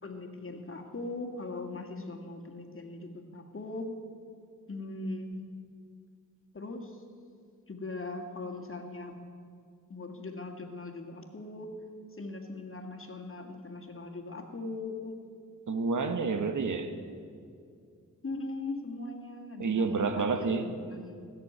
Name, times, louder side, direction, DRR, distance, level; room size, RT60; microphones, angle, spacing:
voice 1, 0.0-3.9 4.7-5.4 6.5-7.0 7.7-9.2 9.9-11.7 12.1-15.2 18.2-21.3, left 2 dB, 40° left, 3 dB, 2.0 m, -40 dB
voice 2, 15.7-16.9 19.6-20.7, right 4 dB, 65° right, 8 dB, 1.1 m, -29 dB
17.0 x 6.8 x 9.5 m, 2.3 s
cardioid pair, 60°, 32 cm